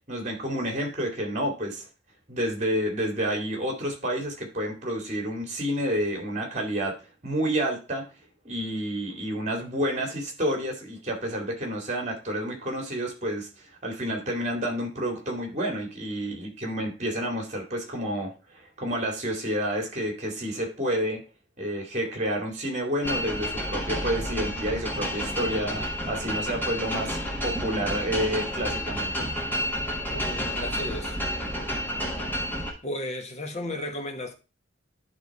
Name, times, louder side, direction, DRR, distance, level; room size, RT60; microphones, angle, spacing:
voice 1, 0.1-1.9 2.3-7.0 7.2-8.0 8.4-21.2 21.6-29.3, equal, 35° right, 2.3 m, -29 dB
sound 1, 23.0-32.7, equal, 10° left, 1.6 m, -30 dB
voice 2, 30.1-31.2 32.8-34.3, left 1 dB, 35° left, 1.3 m, -34 dB
11.0 x 3.6 x 4.6 m
head